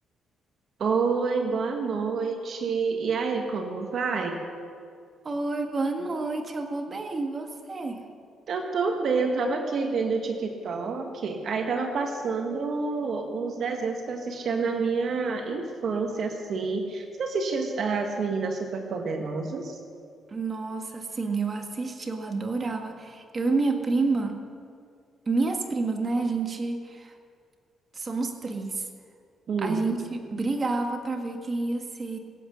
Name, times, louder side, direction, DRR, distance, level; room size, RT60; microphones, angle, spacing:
voice 1, 0.8-4.4 8.5-19.8 29.5-29.8, right 4 dB, 60° right, 4 dB, 1.4 m, -28 dB
voice 2, 5.2-8.0 20.3-24.4 25.3-27.1 27.9-28.8 29.6-32.2, right 3 dB, 35° right, 4 dB, 1.7 m, -29 dB
22.5 x 8.1 x 6.4 m, 2.2 s
cardioid pair, 90°, 0 cm